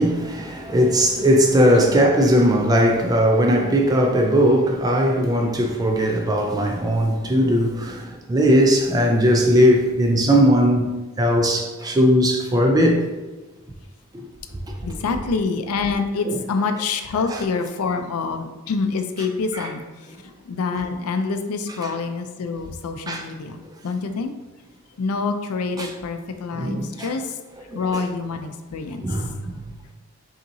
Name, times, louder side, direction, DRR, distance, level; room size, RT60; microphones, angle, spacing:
voice 1, 0.0-13.3 14.1-14.2 19.6-19.7 23.1-23.2 25.8-25.9 26.5-27.1 27.7-28.0 29.0-29.4, equal, 15° right, 0.4 m, -19 dB
voice 2, 14.8-23.6 23.8-24.3 25.0-27.4 27.7-29.1, left 4 dB, 85° left, 0.4 m, -26 dB
5.3 x 2.9 x 2.7 m
head